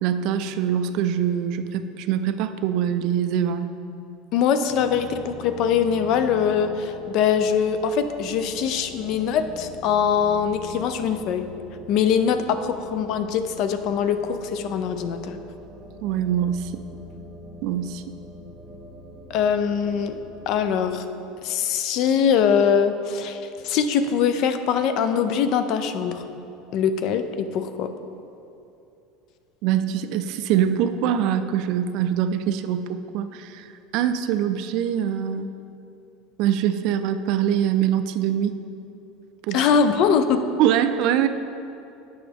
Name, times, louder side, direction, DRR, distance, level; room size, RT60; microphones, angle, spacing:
voice 1, 0.0-3.7 16.0-16.8 17.6-18.0 29.6-33.7 33.9-35.5 36.4-38.6 39.5-39.6 40.6-41.3, right 9 dB, 55° right, 11 dB, 0.3 m, -23 dB
voice 2, 4.3-11.5 11.9-15.4 19.3-21.1 21.4-26.2 26.7-27.9 39.5-40.4, left 7 dB, 50° left, 9 dB, 0.4 m, -22 dB
sound 1, 4.7-20.9, equal, ahead, 0.6 m, -42 dB
8.6 x 6.0 x 3.5 m, 2.7 s
supercardioid pair, 145°, 0 cm